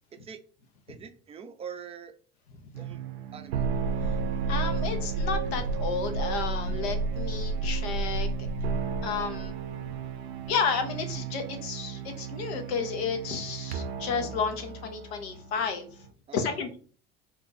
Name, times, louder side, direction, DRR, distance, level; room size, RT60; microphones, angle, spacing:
voice 1, 0.1-0.4 0.9-2.1 2.8-3.7 16.3-16.8, right 7 dB, 20° right, 7 dB, 0.4 m, -44 dB
sound 1, 2.7-16.1, right 4 dB, 85° right, 0.5 m, -32 dB
voice 2, 4.0-8.5 9.0-9.5 9.8-9.9 10.5-15.9 16.3-16.8, left 6 dB, 75° left, 6 dB, 0.8 m, -32 dB
2.6 x 2.4 x 3.8 m, 0.41 s
hypercardioid pair, 75°, 32 cm